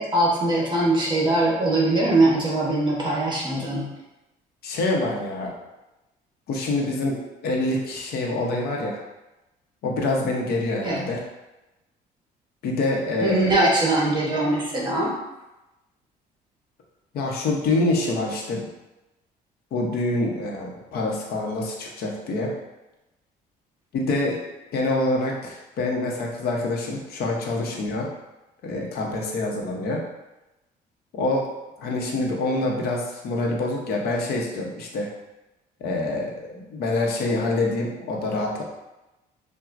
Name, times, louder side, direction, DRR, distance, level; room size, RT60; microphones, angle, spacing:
voice 1, 0.0-3.9 10.8-11.0 13.2-15.1, right 2 dB, 25° right, -4 dB, 1.1 m, -21 dB
voice 2, 4.6-5.5 6.5-7.2 7.4-9.0 9.8-11.2 12.6-13.5 17.1-18.6 19.7-22.5 23.9-24.4 24.7-28.1 28.6-30.0 31.1-35.1 35.8-38.6, left 2 dB, 70° left, 0 dB, 0.9 m, -26 dB
5.8 x 2.3 x 2.5 m, 1.0 s
cardioid pair, 110°, 17 cm